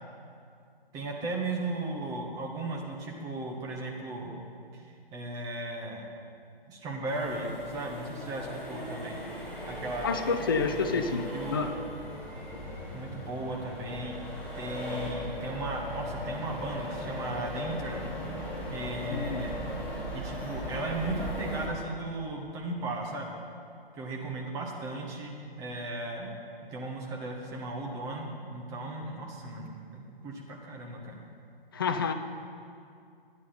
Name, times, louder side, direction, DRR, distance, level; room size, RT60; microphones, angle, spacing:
voice 1, 0.9-4.5 5.1-6.1 6.7-9.2 9.7-10.2 10.7-11.6 12.9-14.2 14.5-18.1 18.7-19.7 20.1-23.3 24.0-25.3 25.6-26.3 26.7-31.2, right 2 dB, 10° right, 0 dB, 0.8 m, -36 dB
Accelerating revving vroom, 7.1-21.7, left 1 dB, 5° left, 1.3 m, -38 dB
voice 2, 10.0-11.7 19.1-19.5 31.7-32.1, left 4 dB, 25° left, 7 dB, 0.4 m, -29 dB
12.5 x 9.5 x 4.3 m, 2.4 s
figure-of-eight pair, 140°, 30 cm